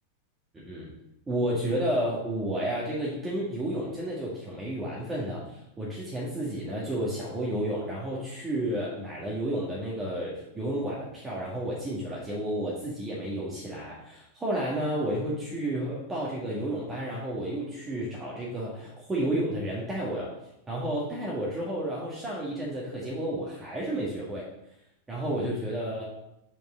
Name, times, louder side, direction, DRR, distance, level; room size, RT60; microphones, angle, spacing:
voice 1, 0.5-0.9 1.3-20.3 20.7-24.5 25.1-26.0, right 1 dB, 15° right, -5 dB, 1.8 m, -31 dB
7.3 x 5.4 x 3.8 m, 0.84 s
figure-of-eight pair, 90°, 0 cm